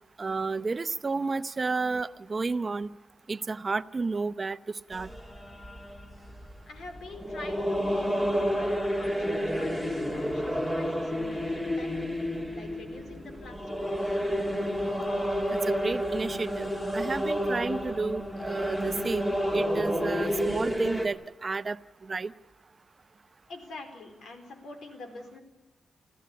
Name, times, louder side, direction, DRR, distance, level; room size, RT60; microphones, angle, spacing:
voice 1, 0.2-2.9 3.3-4.6 4.9-5.1 15.5-22.3, right 4 dB, 35° right, 14 dB, 0.7 m, -31 dB
sound 1, 4.9-21.1, equal, 15° left, 2.6 m, -30 dB
voice 2, 6.7-11.9 12.5-14.2 23.5-25.4, left 2 dB, 85° left, 6 dB, 4.3 m, -45 dB
28.5 x 15.0 x 8.5 m, 1.1 s
cardioid pair, 105°, 0 cm